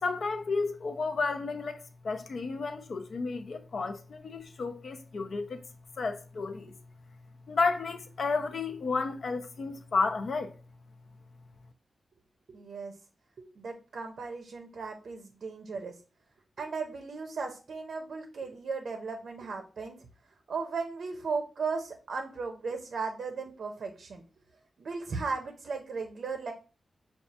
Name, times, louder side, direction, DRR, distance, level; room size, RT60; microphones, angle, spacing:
voice 1, 0.0-5.6 6.0-6.7 7.5-10.5, left 4 dB, 60° left, 0.5 m, -32 dB
voice 2, 12.5-12.9 13.4-16.0 16.6-20.1 20.5-24.2 24.8-26.5, right 4 dB, 65° right, 0.5 m, -36 dB
5.8 x 2.3 x 2.7 m
wide cardioid pair, 140°, 0 cm